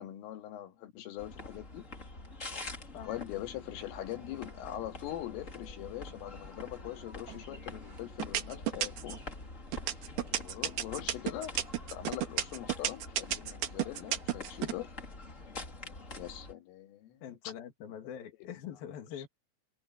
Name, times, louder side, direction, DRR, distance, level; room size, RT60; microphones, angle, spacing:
voice 1, 0.0-1.8 3.0-9.2 10.2-11.5 11.9-14.9 16.1-17.3, left 13 dB, 85° left, 4.8 m, -42 dB
sound 1, 1.2-16.5, left 2 dB, 20° left, 2.2 m, -46 dB
voice 2, 2.9-3.4 17.2-19.3, left 9 dB, 55° left, 3.8 m, -44 dB
sound 2, 7.3-7.7 8.2-9.2 9.7-14.7, right 12 dB, 65° right, 2.9 m, -32 dB
omnidirectional pair, 5.7 m